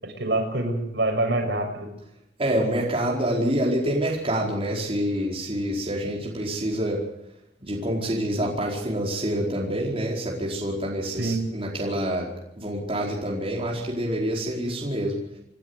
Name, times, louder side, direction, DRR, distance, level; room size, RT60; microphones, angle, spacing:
voice 1, 0.0-1.9 11.1-11.5, right 2 dB, 70° right, 2 dB, 6.5 m, -26 dB
voice 2, 2.4-7.0 7.6-12.3 12.6-15.2, right 1 dB, 30° right, -2 dB, 4.6 m, -27 dB
28.5 x 13.0 x 8.1 m, 0.84 s
head